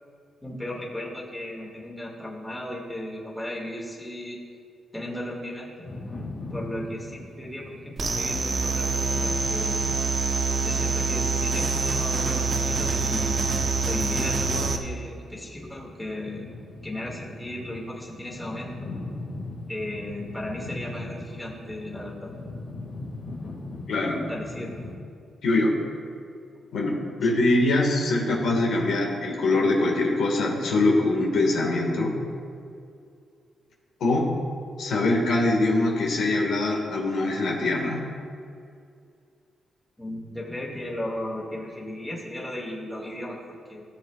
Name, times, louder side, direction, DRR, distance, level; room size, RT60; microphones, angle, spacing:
voice 1, 0.4-4.4 4.9-5.9 6.5-9.9 10.6-13.4 13.9-16.5 16.8-18.9 19.7-22.3 24.3-24.8 27.3-27.4 40.0-43.8, left 1 dB, 10° left, -4 dB, 1.9 m, -35 dB
sound 1, 5.8-25.0, left 2 dB, 60° left, 1.8 m, -40 dB
sound 2, 8.0-14.8, right 4 dB, 45° right, 0.8 m, -25 dB
voice 2, 23.9-24.2 25.4-25.8 26.7-32.1 34.0-34.3 34.8-38.0, left 2 dB, 75° left, -1 dB, 1.6 m, -23 dB
17.0 x 7.2 x 2.3 m, 2.4 s
cardioid pair, 105°, 0 cm